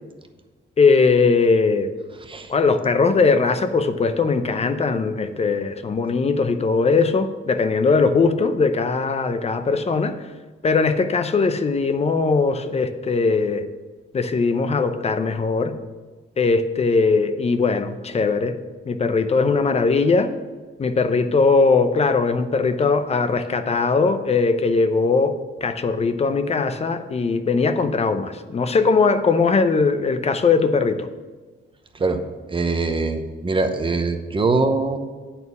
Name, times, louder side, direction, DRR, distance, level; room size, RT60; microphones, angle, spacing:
voice 1, 0.8-1.9 2.5-10.1 10.6-13.6 14.1-15.8 16.4-18.6 18.9-20.3 20.8-25.4 25.6-31.1, left 4 dB, 30° left, 10 dB, 0.6 m, -20 dB
voice 2, 32.5-35.0, right 3 dB, 25° right, 7 dB, 0.8 m, -22 dB
9.1 x 4.3 x 6.8 m, 1.3 s
cardioid pair, 110°, 20 cm